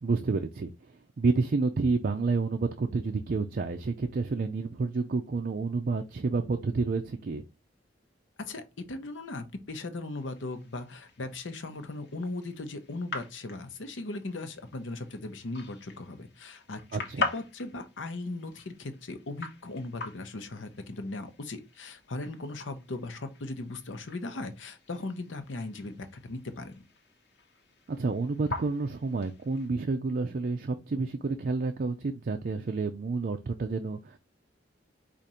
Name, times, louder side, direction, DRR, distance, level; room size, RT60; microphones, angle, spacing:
voice 1, 0.0-7.4 16.9-17.3 27.9-34.2, right 4 dB, 50° right, 0.4 m, -29 dB
voice 2, 8.4-26.9, left 2 dB, 90° left, 0.8 m, -38 dB
sound 1, 10.2-29.7, left 3 dB, 65° left, 1.1 m, -43 dB
5.0 x 2.5 x 4.2 m
head